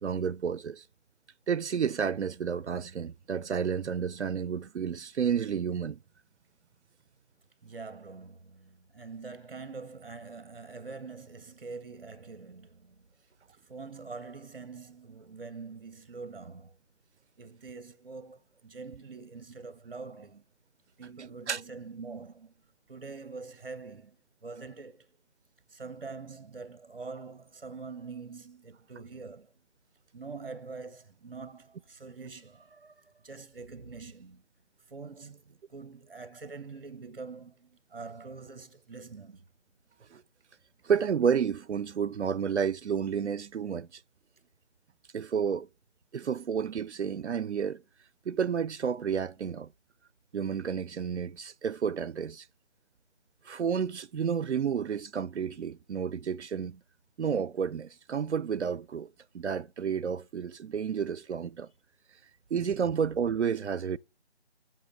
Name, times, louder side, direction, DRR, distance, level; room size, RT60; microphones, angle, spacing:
voice 1, 0.0-0.8 1.5-6.0 21.5-21.6 40.1-40.2 40.8-44.0 45.1-45.7 46.1-47.8 48.3-49.7 50.3-52.5 53.4-56.8 57.2-59.1 59.3-61.7 62.5-64.0, right 7 dB, 90° right, 0.6 m, -31 dB
voice 2, 7.6-13.1 13.5-16.8 17.4-20.4 21.0-22.5 22.9-25.1 25.7-29.5 30.1-34.4 34.9-39.4, right 4 dB, 55° right, 1.4 m, -44 dB
8.4 x 7.7 x 7.9 m
figure-of-eight pair, 165°, 33 cm